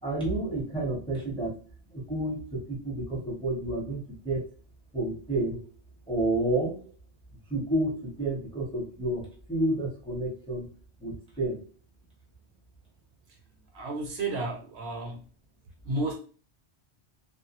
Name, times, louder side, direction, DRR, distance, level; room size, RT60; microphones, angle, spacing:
voice 1, 0.0-1.6 1.9-4.5 4.9-5.7 6.1-6.9 7.5-10.7 11.0-11.7, right 1 dB, 5° left, -4 dB, 0.7 m, -30 dB
voice 2, 13.7-15.2 15.8-16.2, right 2 dB, 70° right, 3 dB, 0.8 m, -32 dB
2.3 x 2.0 x 2.8 m, 0.37 s
omnidirectional pair, 1.1 m